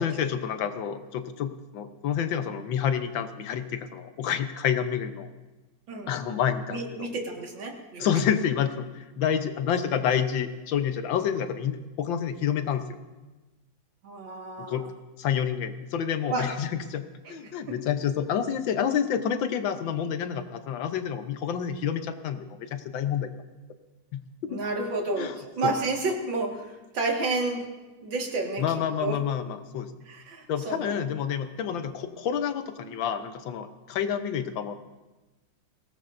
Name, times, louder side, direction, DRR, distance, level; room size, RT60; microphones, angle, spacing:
voice 1, 0.0-5.3 6.1-7.1 8.0-12.8 14.6-14.9 15.2-17.0 17.3-23.3 24.1-24.6 25.2-25.4 25.6-25.7 28.6-29.9 30.5-34.7, left 8 dB, 85° left, 9 dB, 1.6 m, -28 dB
voice 2, 6.7-8.1 14.0-14.9 16.3-16.5 17.3-17.4 17.7-17.8 24.5-27.6 28.0-29.2 30.1-31.1, right 3 dB, 85° right, 1 dB, 2.6 m, -31 dB
22.5 x 18.0 x 2.6 m, 1.1 s
omnidirectional pair, 2.0 m